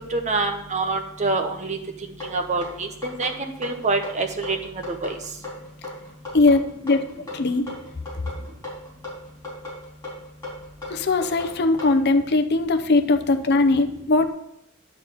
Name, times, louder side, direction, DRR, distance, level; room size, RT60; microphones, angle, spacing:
voice 1, 0.1-1.8 2.3-4.6 5.0-5.2, right 3 dB, 35° right, 4 dB, 0.9 m, -26 dB
sound 1, 2.2-12.0, left 2 dB, 15° left, 4.0 m, -36 dB
voice 2, 6.3-7.0 7.3-7.7 10.9-14.3, left 3 dB, 50° left, 8 dB, 0.6 m, -20 dB
10.0 x 4.0 x 7.3 m, 0.78 s
head